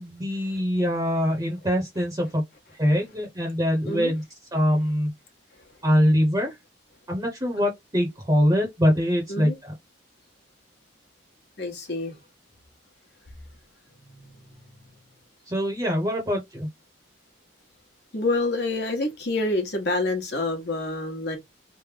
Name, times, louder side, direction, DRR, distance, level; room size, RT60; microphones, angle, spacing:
voice 1, 0.0-2.4 2.8-4.2 4.5-5.1 5.8-6.5 7.1-9.7 15.5-16.7, equal, 20° right, 0.9 m, -23 dB
voice 2, 11.6-12.1 14.1-14.4 18.1-21.4, left 2 dB, 60° left, 1.2 m, -27 dB
3.3 x 2.1 x 3.3 m
head